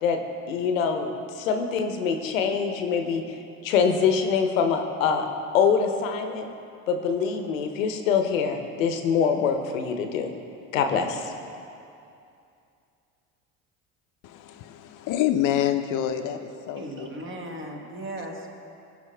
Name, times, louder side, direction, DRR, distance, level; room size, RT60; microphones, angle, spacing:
voice 1, 0.0-3.2 3.6-5.3 5.5-6.5 6.9-10.3 10.7-11.3, left 6 dB, 90° left, 6 dB, 0.7 m, -24 dB
voice 2, 14.2-16.4 16.7-17.1, left 11 dB, 55° left, 8 dB, 0.6 m, -27 dB
voice 3, 16.7-18.5, right 1 dB, 30° right, 1 dB, 1.4 m, -37 dB
13.5 x 5.2 x 3.3 m, 2.5 s
hypercardioid pair, 75°, 39 cm